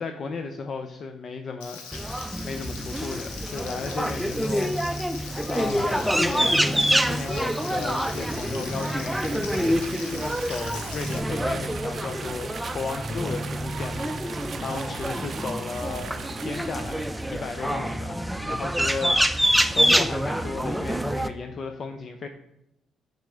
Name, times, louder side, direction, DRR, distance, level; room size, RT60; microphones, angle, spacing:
voice 1, 0.0-5.1 5.5-22.3, left 4 dB, 55° left, 6 dB, 0.6 m, -35 dB
Frying (food), 1.6-11.2, left 5 dB, 90° left, 0.8 m, -41 dB
sound 1, 1.9-21.3, equal, 5° right, 0.6 m, -26 dB
sound 2, 6.9-17.7, right 7 dB, 60° right, 0.4 m, -41 dB
5.9 x 5.7 x 3.7 m, 0.84 s
hypercardioid pair, 50°, 0 cm